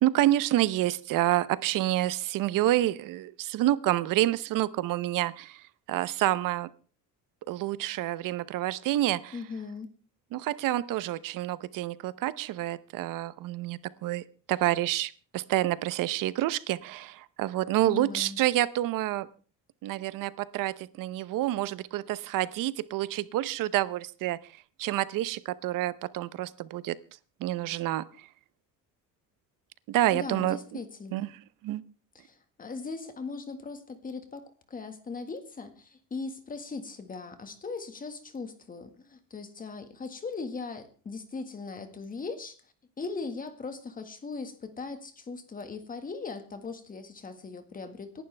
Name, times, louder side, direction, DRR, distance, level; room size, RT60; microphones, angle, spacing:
voice 1, 0.0-5.6 5.9-6.7 7.5-9.4 10.3-14.2 14.5-19.3 19.8-24.4 24.8-27.0 27.4-28.0 29.9-30.6 31.1-31.3 31.6-31.8, right 14 dB, 70° right, 17 dB, 0.9 m, -28 dB
voice 2, 9.3-9.9 17.8-18.4 30.1-31.3 32.1-42.6 43.0-48.2, left 4 dB, 25° left, 8 dB, 1.7 m, -39 dB
27.5 x 11.0 x 3.4 m, 0.39 s
cardioid pair, 150°, 33 cm